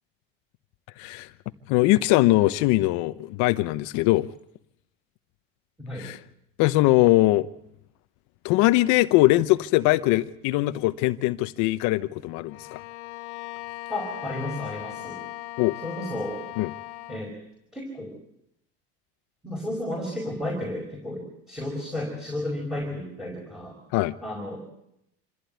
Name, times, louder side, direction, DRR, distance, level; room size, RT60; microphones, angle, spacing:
voice 1, 1.0-1.3 1.7-4.3 5.9-6.2 6.6-7.5 8.4-12.8 15.6-15.8 16.6-16.7 23.9-24.1, left 18 dB, 65° left, 11 dB, 0.9 m, -21 dB
Bowed string instrument, 12.5-17.3, left 17 dB, 85° left, 1.9 m, -38 dB
voice 2, 13.9-15.2 15.8-16.4 17.1-17.3 17.7-18.1 19.4-23.8 24.2-24.6, left 1 dB, ahead, -1 dB, 5.2 m, -32 dB
26.5 x 15.5 x 9.4 m, 0.79 s
cardioid pair, 145°, 32 cm